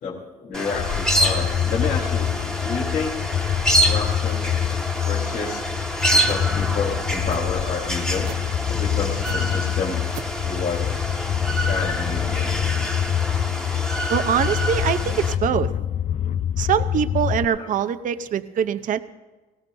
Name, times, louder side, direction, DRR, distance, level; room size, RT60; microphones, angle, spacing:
voice 1, 0.0-2.3 2.6-3.2 3.8-4.5 5.0-5.6 6.1-8.3 8.7-10.0 10.4-10.9 11.7-12.5 17.6-17.7, left 4 dB, 60° left, -4 dB, 3.4 m, -29 dB
sound 1, 0.5-15.3, right 1 dB, 5° left, 1.4 m, -27 dB
sound 2, 0.7-17.4, left 10 dB, 45° left, 0.4 m, -26 dB
sound 3, 6.3-6.5 7.3-7.5 8.2-8.5 9.2-9.4 10.1-10.4, right 10 dB, 85° right, 0.9 m, -37 dB
voice 2, 14.1-15.7 16.6-19.0, right 8 dB, 50° right, 11 dB, 0.7 m, -23 dB
19.5 x 17.5 x 2.7 m, 1.2 s
cardioid pair, 110°, 17 cm